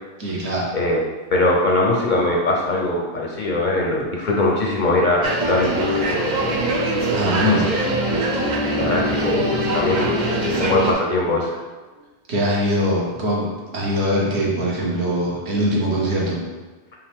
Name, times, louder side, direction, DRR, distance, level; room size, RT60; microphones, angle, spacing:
voice 1, 0.2-0.7 7.1-7.6 12.3-16.4, equal, 75° right, -3 dB, 1.3 m, -22 dB
voice 2, 1.3-5.7 6.1-6.5 7.5-7.6 8.6-10.2 10.5-11.5, left 2 dB, 50° left, -1 dB, 0.6 m, -21 dB
sound 1, 5.2-10.9, right 1 dB, 50° right, 0.7 m, -22 dB
5.5 x 2.5 x 3.4 m, 1.3 s
omnidirectional pair, 1.2 m